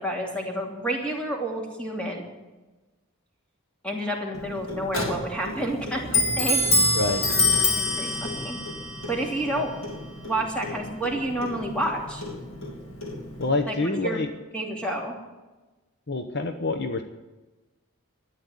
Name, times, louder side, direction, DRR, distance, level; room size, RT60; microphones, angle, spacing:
voice 1, 0.0-2.2 3.8-6.6 7.7-8.6 9.1-9.7 10.2-12.2 13.7-13.8 14.0-14.2 14.5-15.1, right 1 dB, 5° left, -1 dB, 2.9 m, -29 dB
Clock, 4.3-13.6, left 2 dB, 70° left, 3.1 m, -27 dB
voice 2, 13.4-14.3 16.1-17.0, left 2 dB, 50° left, 7 dB, 0.9 m, -26 dB
13.0 x 9.8 x 9.9 m, 1.1 s
head